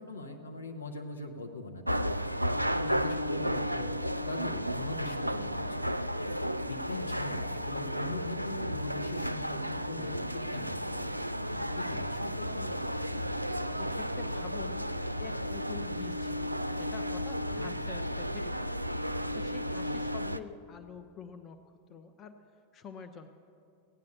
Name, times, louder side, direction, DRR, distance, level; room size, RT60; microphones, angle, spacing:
voice 1, 0.0-2.1 2.4-3.9 4.2-5.8 6.6-11.0 11.6-12.7 17.5-17.7, left 3 dB, 75° left, 3 dB, 1.2 m, -41 dB
sound 1, 1.9-20.4, equal, 90° right, 0.3 m, -33 dB
voice 2, 13.8-14.9 15.2-18.8 19.3-21.6 21.9-23.3, left 6 dB, 30° left, 8 dB, 0.7 m, -47 dB
16.5 x 9.5 x 6.7 m, 2.5 s
figure-of-eight pair, 90°, 0 cm